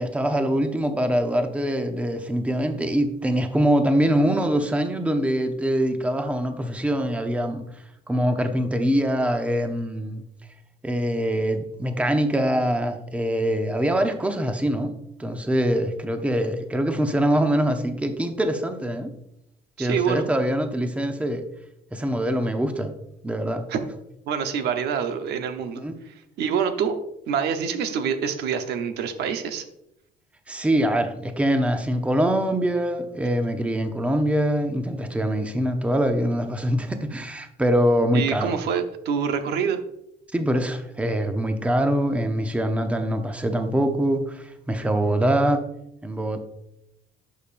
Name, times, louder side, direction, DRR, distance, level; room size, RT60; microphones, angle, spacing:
voice 1, 0.0-7.7 8.1-10.2 10.8-19.1 19.8-21.4 21.9-22.9 23.2-23.7 25.7-26.0 30.5-38.5 40.3-45.7 46.0-46.4, right 1 dB, 5° right, 0.7 m, -24 dB
voice 2, 19.8-20.3 23.7-23.8 24.3-27.0 27.3-29.6 38.1-39.8, right 7 dB, 75° right, 0.9 m, -26 dB
11.0 x 5.4 x 2.6 m
cardioid pair, 110°, 17 cm